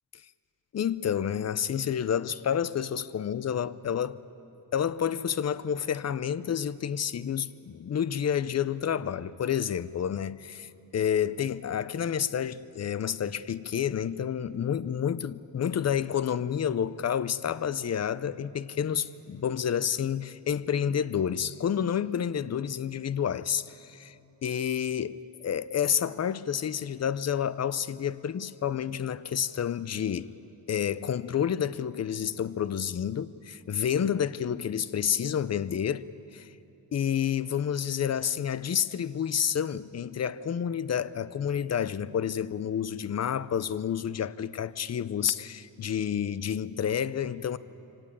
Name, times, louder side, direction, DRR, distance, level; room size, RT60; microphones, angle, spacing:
voice 1, 0.7-4.2 4.7-24.2 24.4-30.3 30.7-36.0 36.3-36.5 36.9-47.6, left 8 dB, 40° left, 0.5 m, -29 dB
24.0 x 17.5 x 9.0 m
wide cardioid pair, 155°, 42 cm